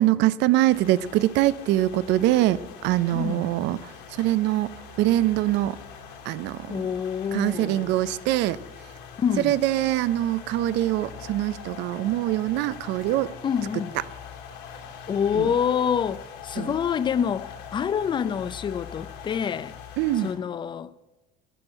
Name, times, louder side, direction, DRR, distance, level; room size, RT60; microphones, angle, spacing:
voice 1, 0.0-4.7 5.0-5.8 6.3-6.8 7.3-8.6 9.4-13.3 15.3-15.5 16.6-16.8 20.0-20.3, right 15 dB, 60° right, 0.5 m, -23 dB
sound 1, 0.7-20.3, left 7 dB, 80° left, 3.1 m, -43 dB
voice 2, 3.1-3.5 6.7-7.9 9.2-9.5 13.4-13.9 15.1-19.7 20.2-20.9, left 7 dB, 20° left, 0.4 m, -27 dB
11.5 x 6.2 x 8.8 m
supercardioid pair, 110°, 21 cm